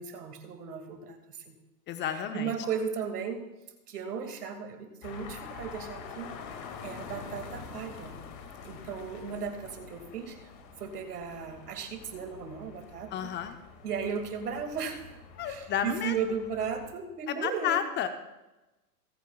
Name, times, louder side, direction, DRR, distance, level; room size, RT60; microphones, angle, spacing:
voice 1, 0.0-1.5 2.0-3.4 3.9-6.3 6.8-8.1 8.6-10.5 10.8-13.3 13.8-15.0 15.4-17.8, right 6 dB, 70° right, 6 dB, 2.3 m, -36 dB
voice 2, 1.9-2.5 13.1-13.6 15.4-16.1 17.3-18.1, left 9 dB, 25° left, 8 dB, 0.8 m, -31 dB
sound 1, 5.0-16.9, left 5 dB, 40° left, 2.2 m, -46 dB
27.5 x 9.3 x 2.4 m, 1.0 s
hypercardioid pair, 110°, 47 cm